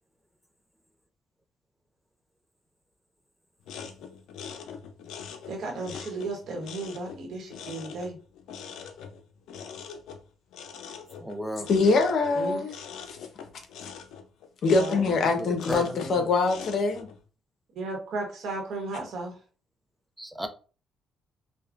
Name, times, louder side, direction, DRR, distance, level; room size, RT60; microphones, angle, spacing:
sound 1, 3.6-17.2, left 7 dB, 85° left, 0.5 m, -43 dB
voice 1, 5.5-8.2 12.3-12.6 14.7-15.1 17.7-19.3, right 2 dB, 75° right, 1.2 m, -34 dB
voice 2, 11.2-11.7 15.4-16.2 20.2-20.5, right 1 dB, 5° right, 0.6 m, -34 dB
voice 3, 11.7-12.7 14.6-17.1, left 3 dB, 65° left, 0.9 m, -23 dB
5.3 x 2.2 x 2.5 m
cardioid pair, 90°, 0 cm